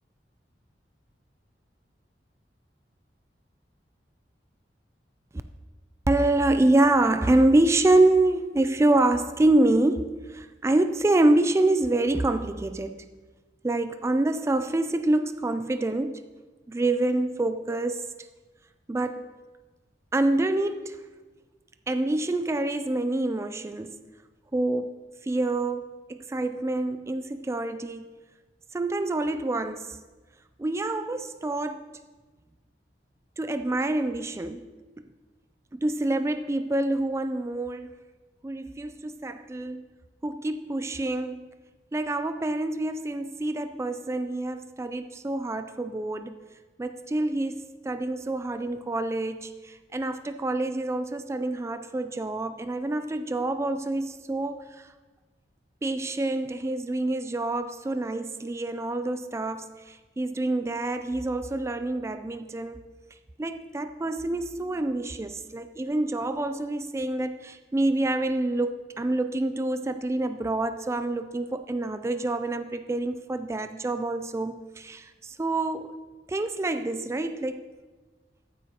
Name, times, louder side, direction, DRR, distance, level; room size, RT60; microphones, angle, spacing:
voice 1, 6.1-13.1 13.6-16.2 16.7-18.1 18.9-19.3 20.1-21.0 21.9-24.0 24.5-25.0 25.2-25.8 26.1-28.1 28.7-30.0 30.6-31.9 33.4-34.7 35.7-37.9 38.4-39.9 40.2-41.5 41.9-46.3 46.8-54.9 55.8-62.8 63.4-76.0 76.3-77.6, right 2 dB, 15° right, 9 dB, 0.3 m, -26 dB
14.0 x 8.5 x 2.9 m, 1.3 s
head